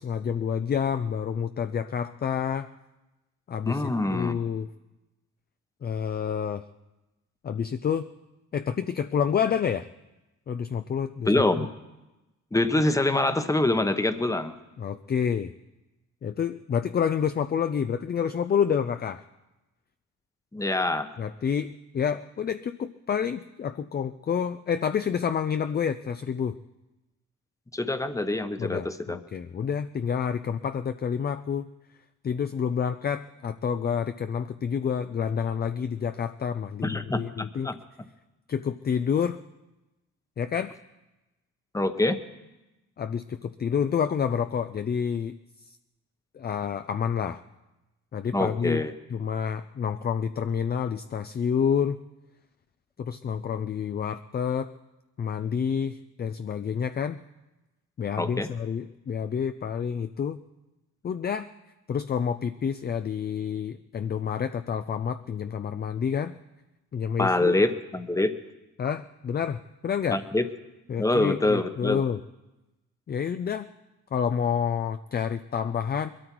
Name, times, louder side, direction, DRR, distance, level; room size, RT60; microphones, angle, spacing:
voice 1, 0.0-2.7 3.5-3.8 4.1-4.7 5.8-6.6 7.4-8.1 8.5-9.9 10.5-11.3 14.8-15.5 16.2-19.2 21.2-26.5 28.6-31.7 32.2-37.7 38.5-39.4 40.4-40.7 43.0-45.3 46.3-47.4 48.1-48.8 49.1-52.0 53.0-54.7 55.2-57.2 58.0-60.4 61.0-61.5 61.9-66.3 66.9-67.5 68.8-70.2 70.9-72.2 73.1-73.7 74.1-76.1, left 7 dB, 30° left, 10 dB, 0.5 m, -28 dB
voice 2, 3.6-4.4 11.3-11.7 12.5-14.5 20.5-21.1 27.7-29.2 36.8-37.7 41.7-42.2 48.3-48.9 58.2-58.5 67.2-68.3 70.1-70.5 71.0-72.0, left 2 dB, 10° left, 9 dB, 1.0 m, -25 dB
21.5 x 13.0 x 4.6 m, 1.0 s
cardioid pair, 90°, 30 cm